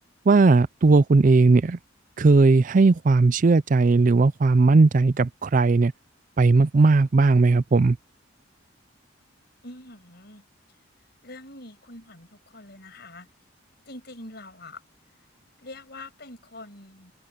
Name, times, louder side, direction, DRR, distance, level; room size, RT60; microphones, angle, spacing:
voice 1, 0.3-1.8 2.2-5.9 6.4-8.0, right 3 dB, 40° right, 0.4 m, -17 dB
voice 2, 9.6-10.4 11.2-13.3 13.9-14.8 15.6-17.1, left 2 dB, 55° left, 6.4 m, -44 dB
head